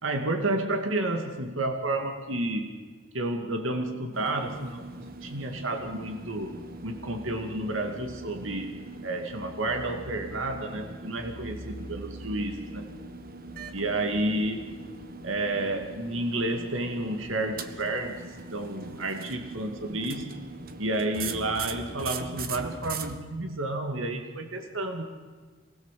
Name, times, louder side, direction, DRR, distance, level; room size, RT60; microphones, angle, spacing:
voice 1, 0.0-2.8 3.1-8.8 9.0-12.9 13.7-14.7 15.2-18.2 18.5-20.3 20.8-25.1, right 2 dB, 85° right, 5 dB, 2.3 m, -31 dB
sound 1, 4.1-23.2, right 3 dB, 50° right, 1.4 m, -41 dB
26.0 x 20.0 x 7.6 m, 1.4 s
head